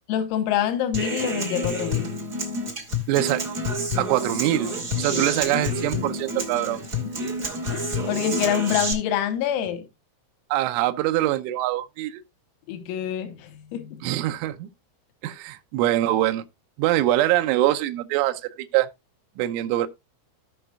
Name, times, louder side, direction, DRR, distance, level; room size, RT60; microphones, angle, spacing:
voice 1, 0.1-2.1 5.1-5.2 7.7-9.9 12.7-14.0, left 10 dB, 90° left, 3.8 m, -26 dB
Human voice / Acoustic guitar, 0.9-8.9, left 1 dB, 40° right, 1.2 m, -28 dB
voice 2, 3.1-3.4 4.0-4.7 5.0-6.8 10.5-12.2 14.0-14.7 15.2-16.4 16.8-18.9 19.4-19.9, right 14 dB, 80° right, 3.0 m, -23 dB
16.5 x 6.0 x 2.3 m
omnidirectional pair, 6.0 m